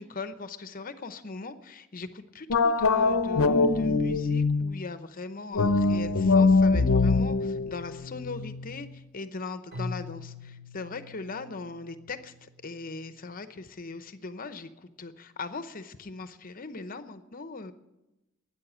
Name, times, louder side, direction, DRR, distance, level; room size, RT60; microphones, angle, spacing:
voice 1, 0.0-17.7, left 3 dB, 45° left, 11 dB, 0.8 m, -40 dB
sound 1, 2.5-4.8 5.5-8.9, left 3 dB, 85° left, 0.7 m, -23 dB
Keyboard (musical), 9.7-12.7, left 3 dB, 50° right, 5.3 m, -42 dB
13.0 x 9.7 x 10.0 m, 1.0 s
head